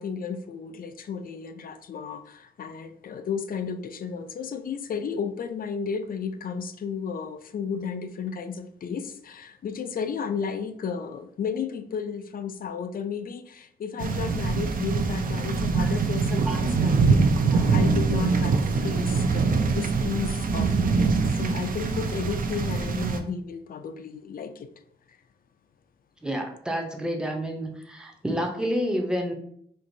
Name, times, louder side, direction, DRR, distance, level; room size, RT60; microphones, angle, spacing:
voice 1, 0.0-17.3 17.7-24.7, left 6 dB, 55° left, 9 dB, 0.4 m, -33 dB
sound 1, 14.0-23.2, right 4 dB, 55° right, 0.4 m, -24 dB
voice 2, 26.2-29.3, equal, 5° right, 2 dB, 0.6 m, -29 dB
4.5 x 2.9 x 2.6 m, 0.69 s
wide cardioid pair, 140°, 18 cm